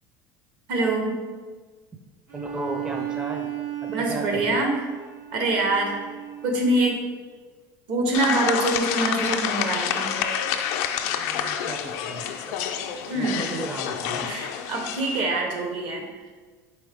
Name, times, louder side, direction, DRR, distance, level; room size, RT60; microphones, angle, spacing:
voice 1, 0.7-1.2 3.9-4.8 5.3-6.0 6.4-7.0 7.9-10.2 13.1-13.5 14.2-16.0, right 2 dB, 65° right, 2 dB, 0.9 m, -25 dB
voice 2, 2.3-3.5 3.8-4.6 11.2-12.5 13.1-14.3, right 2 dB, 10° right, 1 dB, 0.4 m, -35 dB
Bowed string instrument, 2.3-7.0, right 12 dB, 90° right, 1.2 m, -35 dB
sound 1, 8.1-15.2, left 8 dB, 70° left, 0.4 m, -28 dB
4.3 x 3.3 x 3.4 m, 1.4 s
supercardioid pair, 110°, 9 cm